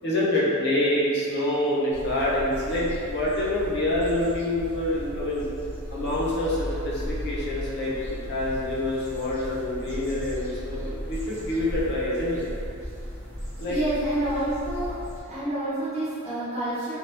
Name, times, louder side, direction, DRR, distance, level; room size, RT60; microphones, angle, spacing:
voice 1, 0.0-5.4 5.9-12.4 13.6-13.8, left 1 dB, 55° left, -6 dB, 0.7 m, -26 dB
sound 1, 1.9-15.2, equal, 10° left, 1.1 m, -36 dB
voice 2, 13.7-15.0 15.2-17.0, right 1 dB, 35° right, -12 dB, 0.9 m, -28 dB
2.9 x 2.3 x 3.3 m, 2.6 s
head